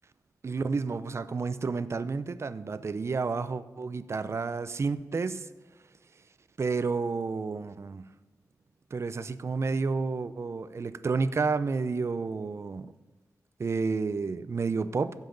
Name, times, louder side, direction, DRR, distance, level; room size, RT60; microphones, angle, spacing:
voice 1, 0.4-5.5 6.6-8.0 8.9-12.9 13.6-15.1, right 4 dB, 45° right, 14 dB, 0.5 m, -30 dB
15.5 x 7.3 x 3.9 m, 1.2 s
wide cardioid pair, 85°, 6 cm